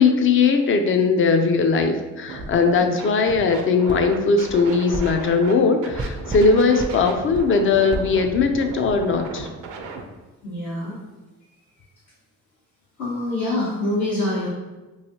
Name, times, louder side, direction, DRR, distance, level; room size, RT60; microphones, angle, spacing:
voice 1, 0.0-9.5, left 4 dB, 45° left, 6 dB, 0.4 m, -19 dB
Scratching (performance technique), 2.3-2.6 3.0-5.5 5.8-10.0, right 3 dB, 85° right, 0.5 m, -36 dB
sound 1, 3.9-4.0 4.9-5.1 6.0-6.5 6.8-6.9 7.3-7.5 7.9-8.1, right 1 dB, 15° right, 0.4 m, -29 dB
voice 2, 10.4-11.0 13.0-14.5, left 1 dB, 75° left, -11 dB, 1.3 m, -25 dB
3.1 x 2.7 x 2.7 m, 1.1 s
cardioid pair, 90°, 30 cm